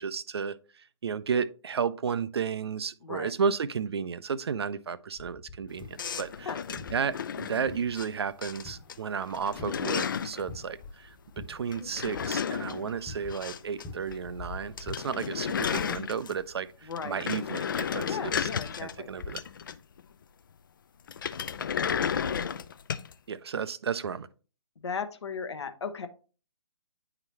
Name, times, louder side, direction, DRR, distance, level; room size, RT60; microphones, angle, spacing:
voice 1, 0.0-6.5 6.9-18.5 18.8-19.4 23.3-24.3, right 6 dB, 50° right, 0.4 m, -33 dB
sound 1, 5.2-15.0, left 3 dB, 20° left, 1.5 m, -46 dB
sound 2, 6.0-8.1 8.4-8.9 9.2-10.4 11.7-13.9 14.1-14.2 14.5-14.6 14.8-16.5 16.9-20.0 21.1-23.1, left 7 dB, 40° left, 0.4 m, -33 dB
voice 2, 16.8-17.2 18.0-19.1 24.8-26.1, left 5 dB, 55° left, 0.9 m, -36 dB
9.5 x 3.9 x 3.0 m
figure-of-eight pair, 135°, 17 cm